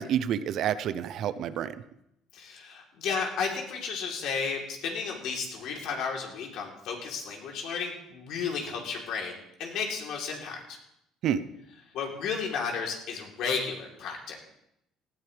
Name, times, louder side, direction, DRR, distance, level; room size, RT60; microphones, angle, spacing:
voice 1, 0.0-1.8 11.2-11.4, right 9 dB, 55° right, 14 dB, 0.7 m, -29 dB
voice 2, 2.3-10.8 11.9-14.4, left 5 dB, 65° left, 0 dB, 3.6 m, -33 dB
18.5 x 14.5 x 3.5 m, 0.80 s
cardioid pair, 135°, 0 cm